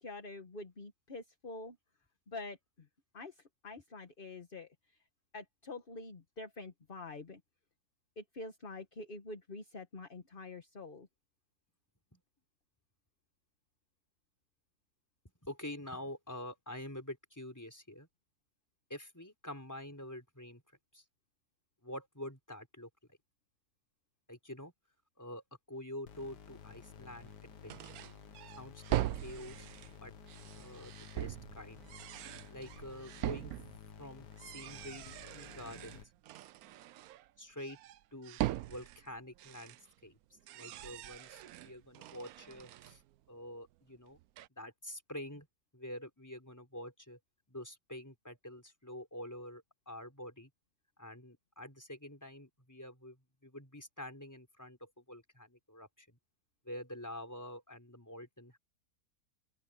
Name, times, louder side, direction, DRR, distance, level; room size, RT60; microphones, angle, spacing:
voice 1, 0.0-1.8 2.3-2.9 3.1-5.0 5.3-7.4 8.2-11.1, left 3 dB, 35° left, 1.5 m, -46 dB
voice 2, 15.4-18.1 18.9-20.6 20.9-21.0 21.8-23.2 24.3-24.7 25.2-28.0 28.6-29.7 30.0-30.1 30.6-31.9 32.5-33.6 34.0-36.0 37.4-37.8 38.1-38.4 38.7-39.8 40.0-40.2 40.5-43.0 43.3-44.2 44.6-45.5 45.7-47.2 47.5-50.5 51.0-56.2 56.6-58.6, left 1 dB, 10° left, 4.2 m, -47 dB
sound 1, 26.1-36.0, left 7 dB, 80° left, 1.9 m, -53 dB
sound 2, 27.3-27.4 27.7-34.0 34.3-37.3 37.6-40.1 40.4-43.2 43.4-43.5 44.2-44.5, right 14 dB, 70° right, 1.0 m, -42 dB
open air
omnidirectional pair, 1.8 m